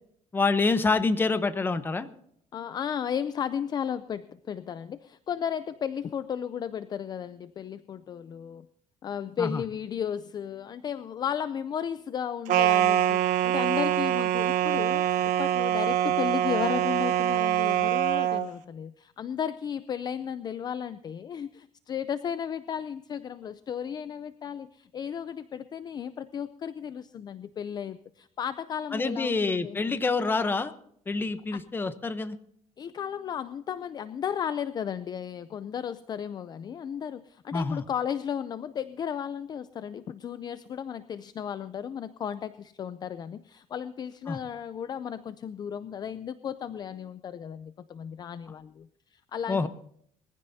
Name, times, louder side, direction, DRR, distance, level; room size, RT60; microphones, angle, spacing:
voice 1, 0.3-2.1 9.4-9.6 28.9-30.7 31.1-32.4 37.5-37.8 44.3-44.4 49.5-49.7, left 3 dB, 15° left, 11 dB, 0.8 m, -27 dB
voice 2, 2.5-8.7 9.0-30.0 32.8-49.7, left 8 dB, 35° left, 13 dB, 0.5 m, -34 dB
sound 1, 12.5-18.5, right 11 dB, 85° right, 0.9 m, -24 dB
22.0 x 15.5 x 2.7 m, 0.66 s
cardioid pair, 150°, 12 cm